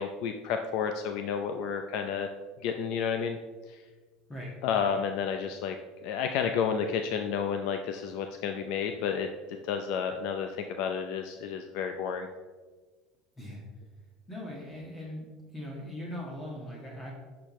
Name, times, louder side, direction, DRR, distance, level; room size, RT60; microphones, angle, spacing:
voice 1, 0.0-2.3 2.6-3.4 3.7-3.8 4.6-5.8 6.0-9.3 9.6-12.3, left 7 dB, 70° left, 6 dB, 0.5 m, -31 dB
voice 2, 14.3-15.3 15.5-17.1, left 1 dB, 20° left, -2 dB, 1.8 m, -40 dB
9.9 x 6.0 x 3.1 m, 1.4 s
supercardioid pair, 120°, 0 cm